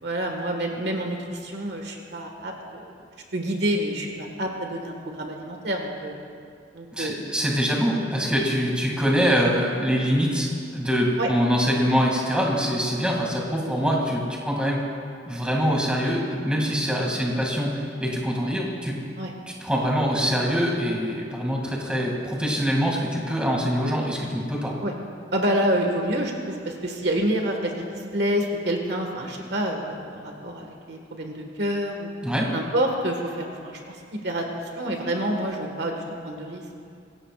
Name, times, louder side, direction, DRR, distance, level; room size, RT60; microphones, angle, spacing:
voice 1, 0.0-2.9 3.3-6.1 6.7-7.3 11.2-11.3 19.2-19.3 24.8-24.9 25.3-32.1 32.5-34.0 34.2-35.9 36.2-36.6, right 1 dB, 65° right, 2 dB, 1.7 m, -28 dB
voice 2, 6.9-10.5 10.7-14.8 15.3-19.0 19.6-24.7 32.2-32.5, equal, 5° right, -3 dB, 2.4 m, -24 dB
23.5 x 17.0 x 2.5 m, 2.3 s
head